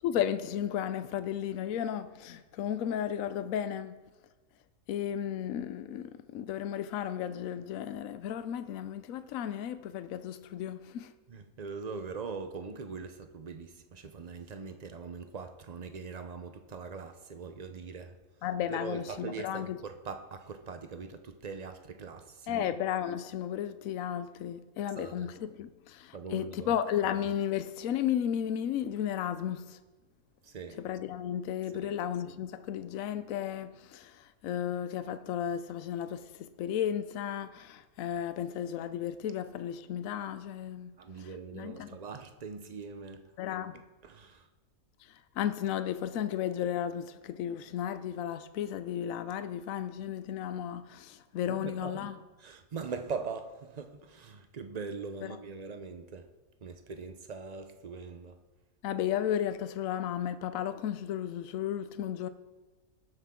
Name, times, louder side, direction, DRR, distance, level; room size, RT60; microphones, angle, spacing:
voice 1, 0.0-4.0 4.9-11.1 18.4-19.8 22.5-29.8 30.8-41.3 41.5-42.0 43.4-43.8 45.4-52.2 55.2-55.4 58.8-62.3, left 10 dB, 75° left, 1.0 m, -34 dB
voice 2, 11.3-18.2 18.7-22.7 25.0-25.3 26.1-26.7 30.4-30.8 31.7-31.9 41.0-43.2 44.0-44.5 51.4-52.1 52.4-56.3 56.6-58.4, right 5 dB, 40° right, 0.6 m, -41 dB
19.0 x 8.2 x 3.7 m
omnidirectional pair, 1.5 m